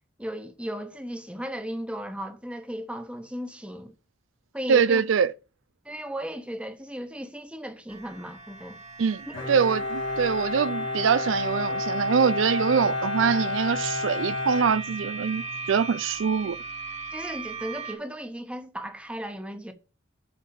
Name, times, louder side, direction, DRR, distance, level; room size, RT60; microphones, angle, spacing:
voice 1, 0.2-3.9 4.5-5.0 5.8-8.8 9.3-9.5 16.4-16.5 17.1-19.7, equal, 5° right, 1.2 m, -36 dB
voice 2, 4.7-5.3 9.0-16.6, right 6 dB, 85° right, 0.4 m, -24 dB
sound 1, 7.9-18.0, right 4 dB, 35° right, 1.6 m, -39 dB
Bowed string instrument, 9.3-15.5, left 2 dB, 70° left, 3.2 m, -30 dB
7.7 x 4.1 x 6.7 m
head